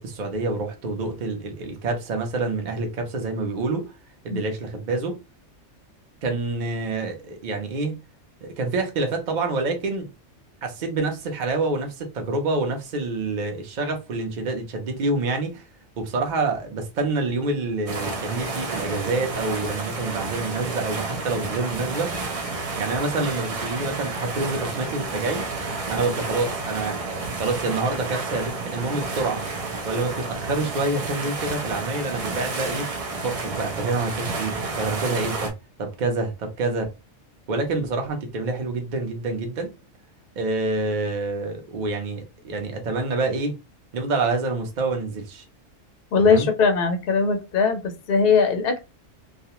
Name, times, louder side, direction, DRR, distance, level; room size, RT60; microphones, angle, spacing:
voice 1, 0.0-3.9 4.2-5.2 6.2-8.0 8.4-10.1 10.6-15.7 16.0-22.1 22.8-25.5 25.9-29.4 29.8-32.9 33.2-35.5 35.8-36.9 37.5-39.7 40.4-43.5 43.9-45.4 46.2-46.5, right 3 dB, 45° right, 0.7 m, -27 dB
sound 1, 17.9-35.5, right 3 dB, 70° right, 0.3 m, -30 dB
voice 2, 46.1-47.8 48.1-48.8, left 5 dB, 60° left, 0.7 m, -20 dB
2.4 x 2.2 x 2.8 m
omnidirectional pair, 1.3 m